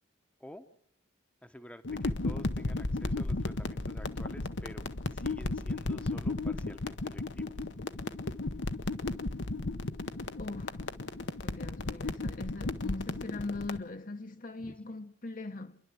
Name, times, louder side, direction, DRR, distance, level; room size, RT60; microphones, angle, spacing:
voice 1, 1.4-7.5 14.6-14.8, equal, 5° left, 1.0 m, -50 dB
sound 1, 1.8-13.8, left 2 dB, 70° left, 1.0 m, -34 dB
voice 2, 10.3-10.8 11.4-15.8, left 2 dB, 45° left, 1.0 m, -40 dB
29.0 x 11.5 x 7.7 m
head